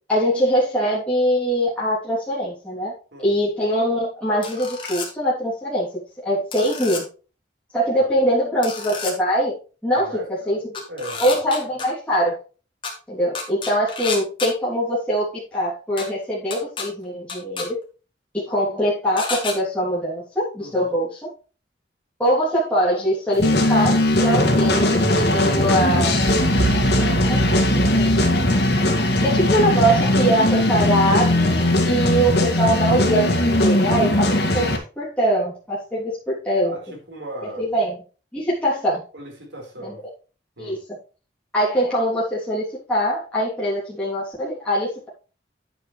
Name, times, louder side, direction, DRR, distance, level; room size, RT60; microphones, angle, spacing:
voice 1, 0.1-2.9 3.2-5.9 6.2-7.0 7.7-9.5 9.8-10.6 11.2-12.4 13.1-17.8 18.3-21.2 22.2-26.2 27.0-27.5 27.8-28.1 29.2-34.3 34.5-36.8 37.6-38.0 38.3-39.0 39.8-39.9 40.6-40.8 41.5-45.1, equal, 5° left, -9 dB, 3.1 m, -22 dB
sound 1, 4.4-5.1 6.5-7.0 8.6-9.1 10.7-11.9 12.8-12.9 13.3-14.5 16.0-16.1 16.5-16.9 17.3-17.7 19.2-19.5, left 5 dB, 30° left, 2.4 m, -30 dB
voice 2, 10.0-10.6 10.9-11.8 20.6-21.0 36.6-37.7 39.1-40.0 40.6-40.8, right 1 dB, 80° right, 1 dB, 4.4 m, -37 dB
sound 2, 23.4-34.8, left 1 dB, 60° left, 2.0 m, -19 dB
sound 3, 26.2-31.1, right 4 dB, 65° right, 2.0 m, -28 dB
9.9 x 8.6 x 3.3 m, 0.35 s
head